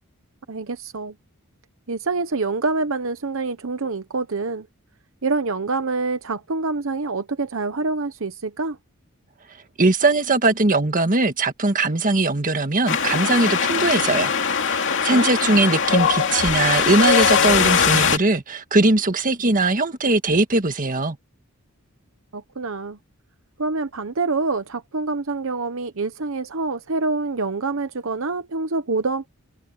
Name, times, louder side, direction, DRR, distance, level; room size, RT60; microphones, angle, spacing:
voice 1, 0.5-1.1 1.9-4.7 5.2-8.8 15.1-15.3 22.3-23.0 23.6-29.3, right 3 dB, 65° right, 0.9 m, -26 dB
voice 2, 9.8-14.3 14.6-21.2, right 2 dB, 40° right, 1.6 m, -20 dB
Wind, 12.9-18.2, left 6 dB, 60° left, 2.6 m, -20 dB
head